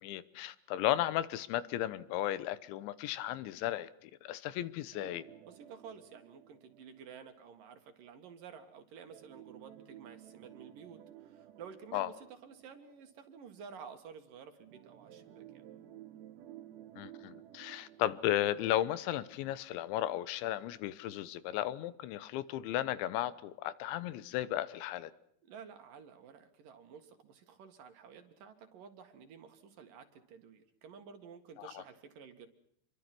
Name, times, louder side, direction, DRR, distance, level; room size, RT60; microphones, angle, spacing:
voice 1, 0.0-5.2 11.9-12.1 17.0-25.1 31.6-31.8, left 13 dB, 80° left, 3.4 m, -35 dB
sound 1, 4.9-7.6 9.1-13.4 14.7-19.6 19.9-20.0 20.6-20.7, right 12 dB, 70° right, 3.4 m, -55 dB
voice 2, 5.5-15.6 25.4-32.5, right 6 dB, 55° right, 3.0 m, -52 dB
27.5 x 23.5 x 6.2 m
omnidirectional pair, 5.3 m